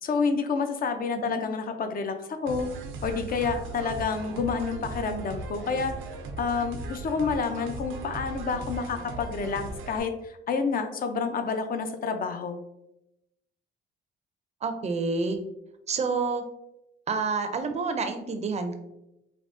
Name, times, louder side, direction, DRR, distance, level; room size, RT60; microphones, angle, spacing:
voice 1, 0.0-2.2 2.4-2.7 3.0-5.9 6.4-12.6, left 5 dB, 45° left, 7 dB, 0.4 m, -29 dB
sound 1, 2.5-10.0, right 2 dB, 85° right, 0.5 m, -38 dB
voice 2, 14.6-15.4 15.9-16.4 17.1-18.8, right 4 dB, 35° right, 7 dB, 0.4 m, -28 dB
3.4 x 2.1 x 2.4 m, 0.85 s
cardioid pair, 90°, 20 cm